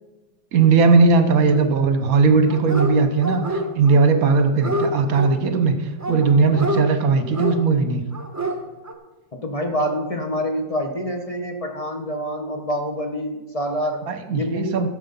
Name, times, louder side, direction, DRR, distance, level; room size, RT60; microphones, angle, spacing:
voice 1, 0.5-8.0 14.1-14.9, right 4 dB, 55° right, 7 dB, 1.3 m, -18 dB
Dog, 2.5-2.9 3.2-4.0 4.3-5.3 6.0-6.8 7.3-7.6 8.1-8.5 8.8-8.9, right 1 dB, 15° right, 0.7 m, -26 dB
voice 2, 9.4-14.9, equal, 40° left, 4 dB, 0.5 m, -27 dB
13.0 x 7.2 x 5.4 m, 1.2 s
omnidirectional pair, 2.0 m